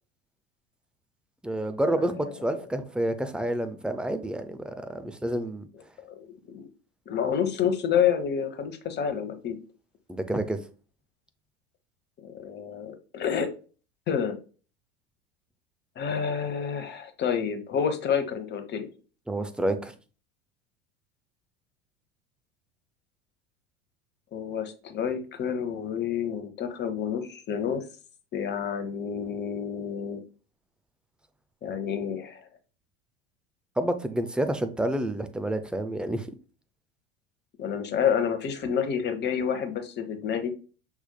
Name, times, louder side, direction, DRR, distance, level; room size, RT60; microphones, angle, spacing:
voice 1, 1.4-5.7 10.1-10.6 19.3-19.9 33.8-36.3, right 1 dB, 5° right, 0.5 m, -29 dB
voice 2, 2.0-2.6 6.1-6.7 7.1-9.6 12.2-13.5 14.1-14.4 16.0-18.9 24.3-27.8 28.3-30.2 31.6-32.5 37.6-40.5, left 7 dB, 35° left, 1.0 m, -29 dB
6.1 x 3.5 x 2.2 m
hypercardioid pair, 80°, 32 cm